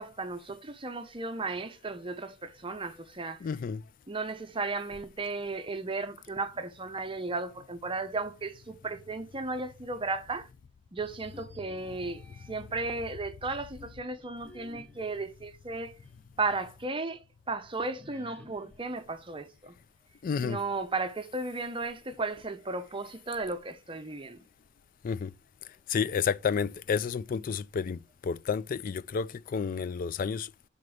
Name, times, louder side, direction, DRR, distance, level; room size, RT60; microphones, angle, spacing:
voice 1, 0.0-3.4 4.1-10.5 10.9-15.9 16.4-17.2 17.5-19.8 20.4-24.4, right 3 dB, 25° right, 0.7 m, -35 dB
voice 2, 3.4-3.8 20.2-20.6 25.0-25.3 25.9-30.5, left 6 dB, 45° left, 0.3 m, -31 dB
sound 1, 11.0-12.8 13.4-16.4 16.8-16.9 18.0-20.0, left 2 dB, 10° left, 1.3 m, -55 dB
6.6 x 4.3 x 6.2 m
head